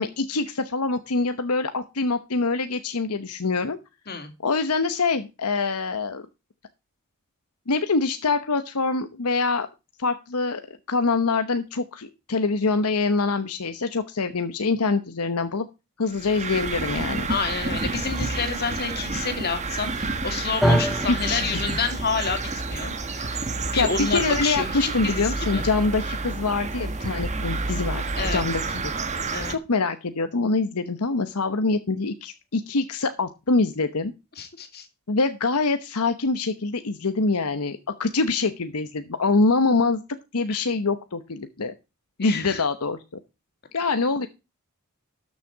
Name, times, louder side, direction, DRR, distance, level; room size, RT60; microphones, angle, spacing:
voice 1, 0.0-3.8 4.4-6.3 7.7-9.7 10.0-10.6 10.9-15.7 16.0-17.3 21.1-21.6 23.8-28.0 28.3-28.9 29.3-34.1 35.1-40.0 40.3-41.7 42.2-43.0 43.7-44.3, left 3 dB, 80° left, 9 dB, 1.0 m, -25 dB
sound 1, 16.1-29.5, right 3 dB, 30° right, 1.3 m, -29 dB
voice 2, 17.3-25.6 28.2-28.4 29.3-29.6 34.4-34.9 40.5-40.6 42.2-42.6, left 5 dB, 45° left, 6 dB, 2.7 m, -29 dB
sound 2, 20.6-28.9, equal, ahead, 0.7 m, -31 dB
13.0 x 6.7 x 4.7 m, 0.27 s
head